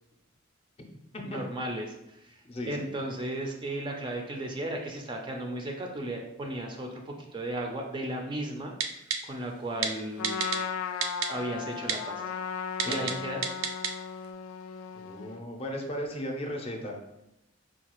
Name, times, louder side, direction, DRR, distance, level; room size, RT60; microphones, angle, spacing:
voice 1, 1.2-8.7 9.2-10.4 11.3-12.4 12.9-13.4, right 1 dB, 25° right, 2 dB, 0.4 m, -35 dB
voice 2, 2.4-2.9 12.8-13.1 14.9-17.2, equal, 30° left, 2 dB, 0.5 m, -36 dB
Typing, 8.8-9.2 9.8-9.9 10.2-10.6 11.0-11.3 11.9-12.0 12.8-13.1 13.4-13.9 14.2-14.3, right 7 dB, 85° right, 0.4 m, -28 dB
Trumpet, 10.2-15.4, left 7 dB, 85° left, 0.3 m, -36 dB
4.6 x 2.3 x 2.9 m, 0.86 s
head